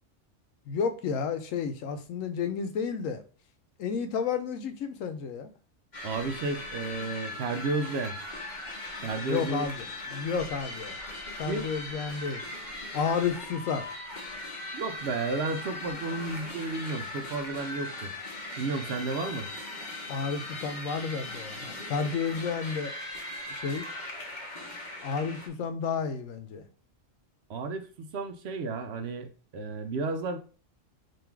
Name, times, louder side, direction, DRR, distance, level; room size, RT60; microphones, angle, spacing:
voice 1, 0.7-3.2 3.8-5.5 9.3-11.0 11.4-12.4 12.9-13.9 20.1-22.9 23.5-23.9 25.0-26.6, left 6 dB, 85° left, 1.0 m, -31 dB
sound 1, 5.9-25.5, left 2 dB, 40° left, 1.1 m, -39 dB
voice 2, 6.0-8.2 9.0-9.6 11.5-11.7 14.7-18.1 18.6-19.5 27.5-29.3 29.5-30.4, right 3 dB, 65° right, 0.8 m, -32 dB
3.8 x 2.7 x 4.5 m
omnidirectional pair, 1.3 m